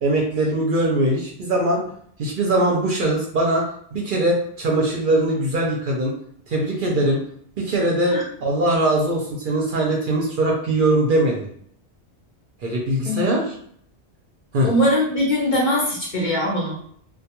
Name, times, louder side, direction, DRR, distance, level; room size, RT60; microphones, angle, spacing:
voice 1, 0.0-1.8 2.2-3.6 3.9-6.1 6.5-7.2 7.6-8.1 8.4-11.5 12.6-13.4 14.5-14.7, right 1 dB, 60° right, -2 dB, 0.6 m, -21 dB
voice 2, 14.6-16.7, equal, 50° left, -3 dB, 0.6 m, -21 dB
2.2 x 2.2 x 2.8 m, 0.63 s
omnidirectional pair, 1.2 m